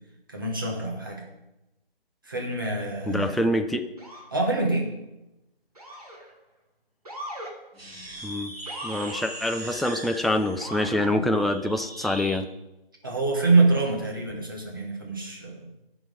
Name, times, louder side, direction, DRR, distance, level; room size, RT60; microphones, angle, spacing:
voice 1, 0.3-1.2 2.2-3.5 4.3-4.9 13.0-15.7, right 3 dB, 20° right, 0 dB, 1.4 m, -25 dB
voice 2, 3.1-3.8 8.2-8.5 8.8-12.4, left 1 dB, ahead, 5 dB, 0.3 m, -25 dB
Motor vehicle (road) / Siren, 4.0-4.4 5.8-6.3 7.1-7.5 8.7-9.2 10.6-11.1, equal, 40° right, 2.0 m, -39 dB
sound 1, 7.7-12.4, right 1 dB, 80° right, 2.8 m, -39 dB
14.5 x 6.2 x 5.1 m, 0.95 s
figure-of-eight pair, 175°, 30 cm